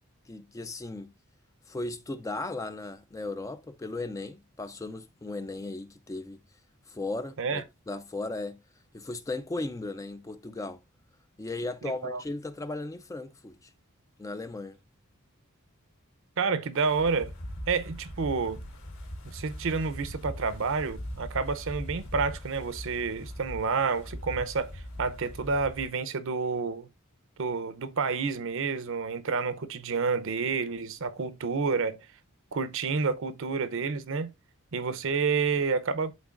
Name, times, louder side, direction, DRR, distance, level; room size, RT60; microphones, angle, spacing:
voice 1, 0.3-1.1 1.7-6.4 6.9-8.6 8.9-10.8 11.4-13.7 14.2-14.8, left 2 dB, 15° left, 0.3 m, -36 dB
voice 2, 11.8-12.2 16.4-17.3 17.7-18.6 19.2-26.9 27.4-32.0 32.5-34.3 34.7-36.1, right 5 dB, 60° right, 0.6 m, -29 dB
Wind, 16.7-25.9, equal, 65° left, 3.0 m, -41 dB
11.5 x 3.8 x 2.4 m
head